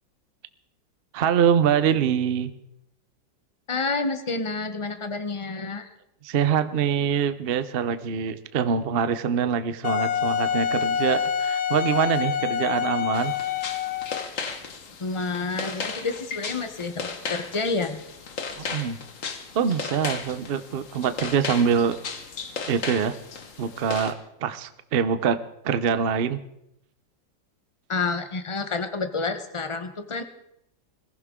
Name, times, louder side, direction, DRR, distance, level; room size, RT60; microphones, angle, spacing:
voice 1, 1.1-2.5 6.2-13.3 18.6-19.0 19.5-22.0 22.7-23.1 23.6-25.4 25.6-26.4, right 7 dB, 55° right, 12 dB, 0.6 m, -24 dB
voice 2, 3.7-5.9 15.0-18.0 27.9-30.2, left 3 dB, 30° left, 8 dB, 0.6 m, -29 dB
Wind instrument woodwind instrument, 9.8-14.4, left 8 dB, 75° left, 0.6 m, -26 dB
sound 1, 13.1-24.1, left 5 dB, 50° left, 1.4 m, -35 dB
21.5 x 15.0 x 3.7 m, 0.80 s
omnidirectional pair, 2.0 m